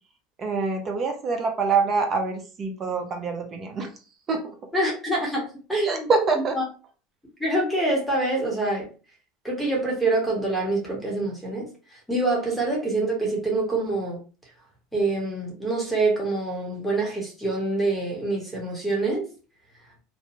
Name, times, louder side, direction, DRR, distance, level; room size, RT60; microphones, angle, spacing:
voice 1, 0.4-3.9 4.3-4.5 5.8-6.6, right 4 dB, 30° right, 0.6 m, -25 dB
voice 2, 4.7-6.1 6.6-6.7 7.4-8.9 9.4-14.2 14.9-19.3, right 2 dB, 5° left, 1.1 m, -26 dB
2.7 x 2.2 x 2.9 m
supercardioid pair, 120°, 0 cm